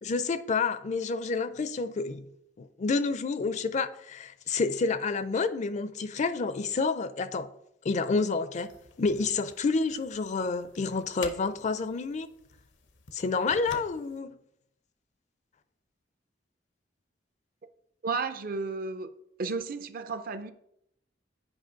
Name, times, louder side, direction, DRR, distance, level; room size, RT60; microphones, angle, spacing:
voice 1, 0.0-2.3 2.6-7.5 7.8-8.7 9.0-12.3 13.1-14.4, left 4 dB, 40° left, 0.4 m, -29 dB
sound 1, 8.5-14.2, left 4 dB, 85° left, 0.9 m, -48 dB
voice 2, 18.0-19.1 19.4-20.5, right 4 dB, 55° right, 0.6 m, -33 dB
8.9 x 4.9 x 3.9 m
head